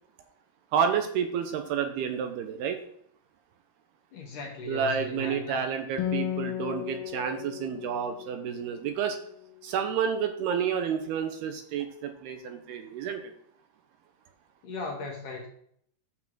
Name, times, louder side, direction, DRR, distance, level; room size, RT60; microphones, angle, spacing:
voice 1, 0.7-2.8 4.7-9.2 9.6-13.3, right 7 dB, 80° right, 6 dB, 2.7 m, -30 dB
voice 2, 4.1-5.7 14.6-15.5, left 3 dB, 65° left, 0 dB, 2.2 m, -37 dB
Acoustic guitar, 6.0-9.7, left 11 dB, 90° left, 1.9 m, -35 dB
9.6 x 4.4 x 7.5 m, 0.66 s
omnidirectional pair, 4.9 m